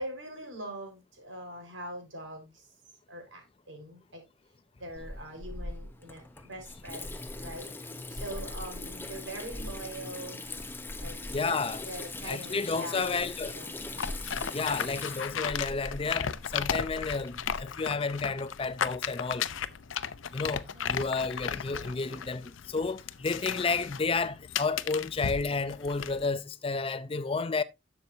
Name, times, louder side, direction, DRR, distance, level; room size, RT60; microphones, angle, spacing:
voice 1, 0.0-2.7 3.1-4.2 4.8-7.7 8.1-10.5 11.0-11.6 11.9-13.1 13.5-13.8, right 1 dB, 80° right, 4.6 m, -42 dB
Water tap faucet / Sink (filling or washing), 5.0-17.6, left 2 dB, 10° left, 0.8 m, -41 dB
voice 2, 11.3-11.8 12.2-13.6 14.5-19.5 20.3-27.6, left 4 dB, 30° left, 0.4 m, -31 dB
sound 1, 14.0-26.3, left 8 dB, 80° left, 0.6 m, -36 dB
sound 2, 18.7-18.8 19.0-19.3 19.8-19.9 20.3-22.3, equal, 30° right, 2.6 m, -54 dB
11.5 x 7.0 x 2.7 m
head